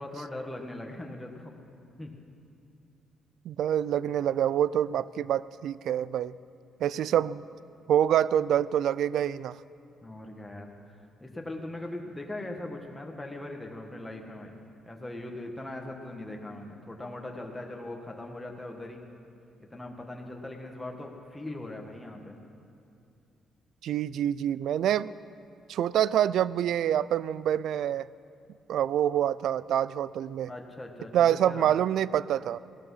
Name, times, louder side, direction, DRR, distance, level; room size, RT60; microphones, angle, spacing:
voice 1, 0.0-1.5 2.0-2.1 6.9-7.2 10.0-10.7 11.2-19.0 19.6-22.4 30.5-31.7, left 1 dB, 10° left, 1 dB, 1.6 m, -40 dB
voice 2, 3.4-6.3 6.8-7.5 7.9-9.6 23.8-25.1 25.7-28.1 28.7-30.5 31.1-32.6, right 10 dB, 75° right, 19 dB, 0.3 m, -26 dB
17.0 x 12.5 x 5.7 m, 2.5 s
cardioid pair, 90°, 0 cm